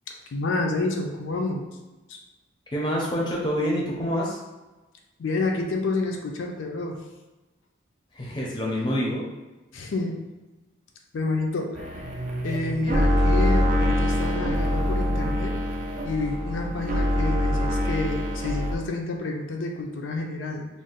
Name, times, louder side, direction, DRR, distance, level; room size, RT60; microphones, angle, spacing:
voice 1, 0.3-1.7 2.1-2.2 5.2-7.0 9.7-10.3 11.1-12.2 12.4-15.6 16.0-20.7, left 3 dB, 75° left, 1 dB, 0.4 m, -29 dB
voice 2, 2.7-4.4 8.1-9.2, equal, 25° left, -3 dB, 0.5 m, -26 dB
sound 1, 11.8-18.8, left 1 dB, 40° right, 0.4 m, -24 dB
2.5 x 2.0 x 3.9 m, 1.1 s
head